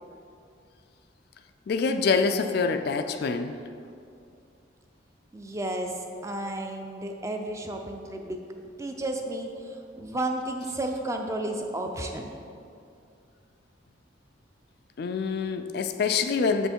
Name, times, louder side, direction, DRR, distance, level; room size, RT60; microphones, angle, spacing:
voice 1, 1.7-3.5 15.0-16.7, left 5 dB, 55° left, 8 dB, 0.3 m, -25 dB
voice 2, 5.3-12.3, right 1 dB, 15° right, 3 dB, 0.4 m, -33 dB
6.8 x 5.4 x 4.5 m, 2.5 s
head